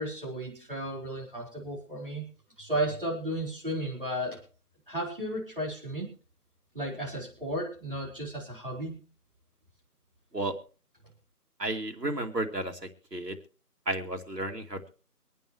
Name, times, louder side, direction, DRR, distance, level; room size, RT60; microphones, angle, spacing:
voice 1, 0.0-2.2 2.6-4.4 4.9-6.1 6.7-9.0, right 1 dB, 35° right, -4 dB, 4.4 m, -34 dB
voice 2, 11.6-13.4 13.9-14.9, right 1 dB, 90° right, 4 dB, 2.7 m, -33 dB
25.0 x 9.3 x 3.1 m, 0.37 s
figure-of-eight pair, 175°, 47 cm